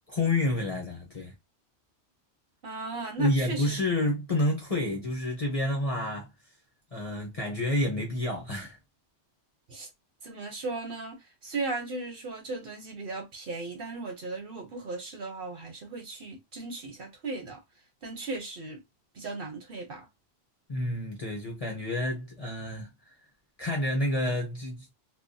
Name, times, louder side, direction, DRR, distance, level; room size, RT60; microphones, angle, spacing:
voice 1, 0.1-1.3 3.2-6.3 6.9-8.8 20.7-22.9 23.6-24.9, left 1 dB, 40° left, 0.6 m, -29 dB
voice 2, 2.6-3.7 9.7-9.9 10.2-17.6 18.0-18.8 19.2-20.1, right 3 dB, 55° right, 0.9 m, -36 dB
2.2 x 2.2 x 2.5 m
omnidirectional pair, 1.2 m